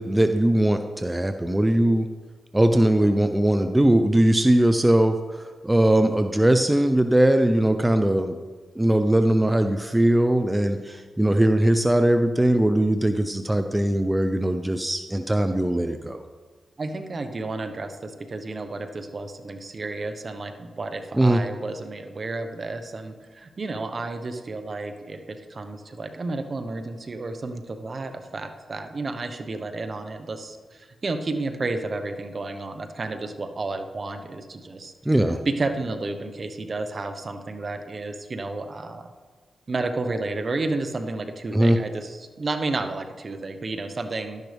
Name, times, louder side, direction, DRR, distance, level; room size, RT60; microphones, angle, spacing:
voice 1, 0.0-2.1 2.5-8.4 8.8-16.2 21.2-21.4 35.1-35.4 41.5-41.8, right 1 dB, 15° right, 7 dB, 0.7 m, -20 dB
voice 2, 16.8-34.9 35.4-39.1 39.7-44.4, right 3 dB, 50° right, 7 dB, 1.2 m, -31 dB
12.0 x 10.5 x 3.5 m, 1.4 s
cardioid pair, 55°, 0 cm